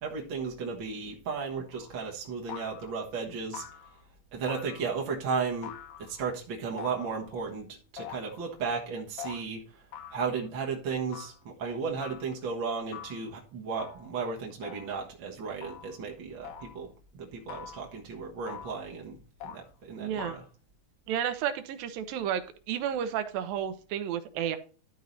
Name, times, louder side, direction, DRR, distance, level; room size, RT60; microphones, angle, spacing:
voice 1, 0.0-3.7 4.3-5.7 6.0-9.8 10.1-20.4, right 5 dB, 55° right, -1 dB, 1.4 m, -35 dB
sound 1, 1.7-2.0 2.5-3.0 3.5-4.0 4.5-5.1 5.6-6.2 6.8-7.5 8.0-8.5 9.2-9.4 9.9-10.5 11.1-11.4 12.0-12.3 12.9-13.3 13.8-14.2 14.6-15.0 15.6-16.0 16.4-16.8 17.5-17.9 18.5-18.8 19.4-19.7 20.2-20.5, left 8 dB, 65° left, 2.1 m, -44 dB
voice 2, 20.0-20.4 21.1-22.4 22.7-24.6, right 9 dB, 75° right, 10 dB, 2.6 m, -31 dB
13.0 x 4.7 x 4.1 m, 0.37 s
omnidirectional pair, 4.3 m